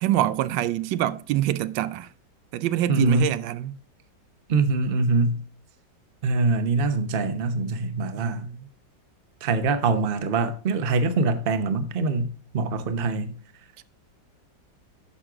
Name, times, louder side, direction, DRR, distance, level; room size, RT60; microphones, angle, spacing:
voice 1, 0.0-2.1 2.5-3.8 8.2-8.7 13.8-13.9, right 13 dB, 85° right, 1.3 m, -26 dB
voice 2, 2.9-3.3 4.5-5.5 6.2-8.5 9.4-13.4, right 3 dB, 40° right, 0.8 m, -24 dB
9.7 x 6.3 x 3.6 m
omnidirectional pair, 2.0 m